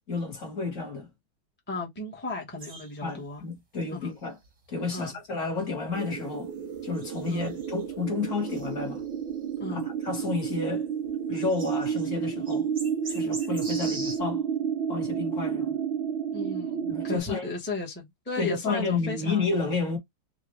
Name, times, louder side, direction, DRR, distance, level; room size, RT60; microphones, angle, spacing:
voice 1, 0.1-1.1 3.0-4.4 4.7-6.5 6.8-9.0 9.7-10.9 11.3-12.7 13.1-14.4 14.9-15.8 16.9-17.5 18.4-20.0, left 4 dB, 40° left, 1.8 m, -31 dB
voice 2, 1.7-3.4 4.0-4.1 4.9-5.2 7.3-7.5 9.6-9.9 16.3-19.5, left 3 dB, 10° left, 0.8 m, -35 dB
sound 1, 2.6-3.4 3.7-3.8 4.4-4.5 4.9-5.0 5.9-6.0 6.9-7.8 8.5-9.3 9.8-9.9 10.3-10.7 11.0-11.1 11.3-12.1 12.5-14.2, right 2 dB, 25° right, 0.8 m, -42 dB
sound 2, 5.9-17.2, right 7 dB, 85° right, 1.4 m, -31 dB
3.8 x 2.6 x 3.1 m
omnidirectional pair, 2.1 m